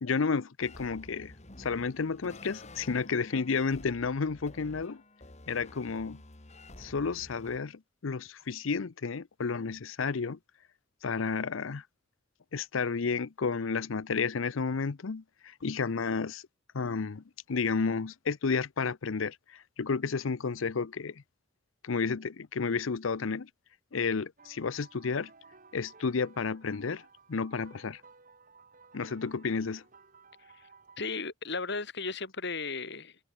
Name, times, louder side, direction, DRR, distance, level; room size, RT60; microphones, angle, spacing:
voice 1, 0.0-1.3 1.6-5.0 5.5-6.2 6.8-10.4 11.0-11.8 12.5-16.4 16.7-21.2 21.8-23.5 23.9-25.3 25.7-28.0 28.9-29.8, left 5 dB, 85° left, 0.6 m, -31 dB
sound 1, 0.6-7.6, left 1 dB, 35° left, 3.1 m, -50 dB
sound 2, 24.4-31.1, right 4 dB, 45° right, 7.3 m, -57 dB
voice 2, 31.0-33.2, left 4 dB, 60° left, 5.4 m, -35 dB
head